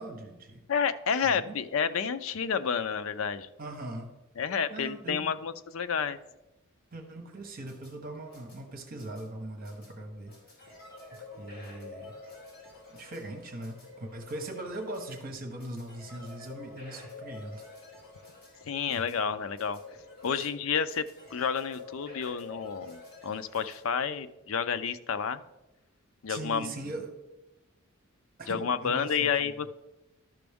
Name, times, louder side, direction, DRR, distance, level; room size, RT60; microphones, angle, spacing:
voice 1, 0.0-0.6 1.3-1.6 3.6-4.1 4.7-5.3 6.9-10.7 11.4-12.1 12.9-17.6 20.3-20.5 26.3-27.1 28.4-29.5, right 1 dB, 40° right, 3 dB, 1.1 m, -40 dB
voice 2, 0.7-3.5 4.4-6.2 18.6-19.8 20.2-21.0 21.3-25.4 26.2-26.7 28.5-29.7, left 6 dB, 65° left, 11 dB, 0.5 m, -30 dB
sound 1, 7.4-23.8, left 3 dB, 45° left, 3.0 m, -49 dB
12.0 x 6.0 x 3.5 m, 0.99 s
head